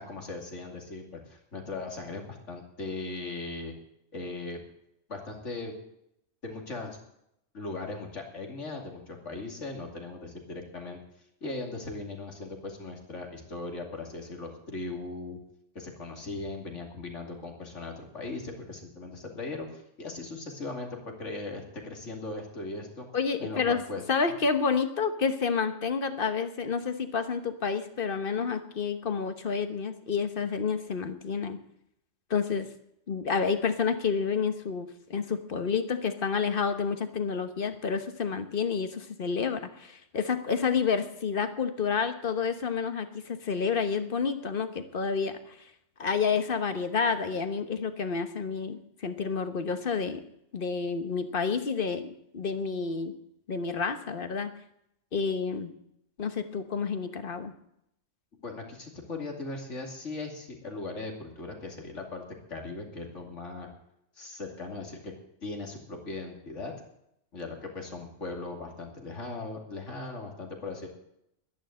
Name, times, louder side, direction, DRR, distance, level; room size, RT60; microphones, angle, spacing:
voice 1, 0.0-3.7 4.1-4.6 5.1-5.7 6.4-7.0 7.5-11.0 11.4-15.4 15.7-23.1 23.4-24.0 58.4-62.2 62.5-63.7 64.2-65.1 65.4-66.7 67.3-70.9, left 3 dB, 80° left, 2 dB, 2.9 m, -38 dB
voice 2, 23.1-23.8 24.1-31.6 32.3-32.7 33.1-45.6 46.0-50.2 50.5-53.1 53.5-54.5 55.1-55.7 56.2-57.5, left 5 dB, 50° left, 9 dB, 1.3 m, -29 dB
12.0 x 11.0 x 7.7 m, 0.78 s
omnidirectional pair, 1.2 m